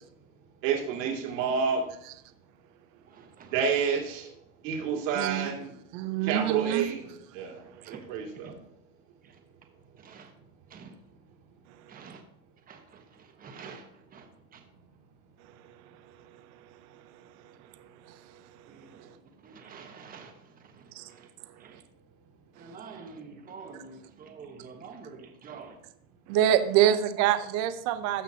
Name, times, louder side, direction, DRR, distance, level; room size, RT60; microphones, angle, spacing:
voice 1, 0.6-1.8 3.5-4.3 4.6-5.7 6.2-7.1 7.3-7.6 7.9-8.5, right 6 dB, 65° right, 2.5 m, -29 dB
voice 2, 3.1-3.5 7.8-8.0 10.0-10.3 10.7-10.9 11.9-12.2 12.7-12.8 13.4-13.8 14.1-14.3 18.7-19.1 19.4-20.3 21.6-21.8 22.6-25.7 27.2-27.3, right 5 dB, 20° right, 1.2 m, -46 dB
voice 3, 5.1-5.5 5.9-6.9 18.1-18.2 20.9-21.1 26.3-28.2, right 11 dB, 45° right, 0.7 m, -25 dB
14.5 x 6.0 x 2.8 m
supercardioid pair, 145°, 41 cm